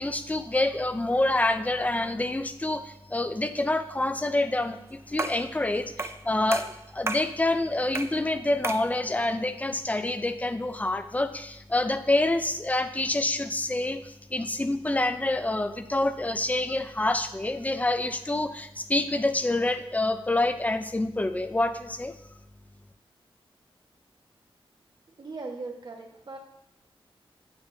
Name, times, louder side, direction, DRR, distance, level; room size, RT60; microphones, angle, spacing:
voice 1, 0.0-22.1, left 2 dB, 15° left, 9 dB, 0.6 m, -27 dB
sound 1, 5.2-5.5 6.0-6.2 6.5-7.3 7.9-8.2 8.6-8.9, right 3 dB, 25° right, 0.5 m, -32 dB
voice 2, 25.2-26.4, right 3 dB, 50° right, 1 dB, 1.6 m, -38 dB
8.9 x 8.7 x 2.8 m, 0.80 s
wide cardioid pair, 110°, 10 cm